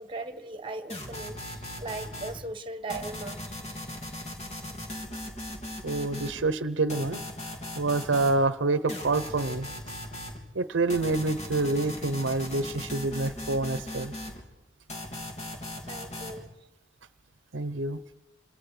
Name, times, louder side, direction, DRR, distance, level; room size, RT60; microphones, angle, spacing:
voice 1, 0.0-3.4 15.8-16.5, right 2 dB, 30° right, 1.5 m, -38 dB
sound 1, 0.9-2.4 2.9-6.4 6.9-8.4 8.9-10.4 10.9-14.4 14.9-16.4, left 1 dB, 40° left, 3.7 m, -38 dB
voice 2, 5.8-7.2 7.7-9.7 10.5-14.1 17.5-18.0, right 3 dB, 80° right, 0.9 m, -27 dB
27.5 x 26.5 x 5.0 m
head